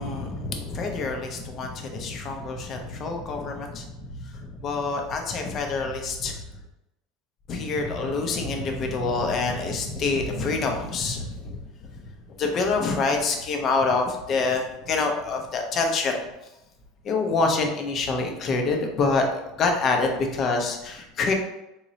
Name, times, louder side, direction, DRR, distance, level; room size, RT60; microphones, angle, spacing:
voice 1, 0.0-6.4 7.5-11.6 12.4-16.2 17.0-21.3, left 3 dB, 30° left, 3 dB, 0.5 m, -26 dB
3.8 x 3.0 x 2.6 m, 0.93 s
cardioid pair, 160°, 0 cm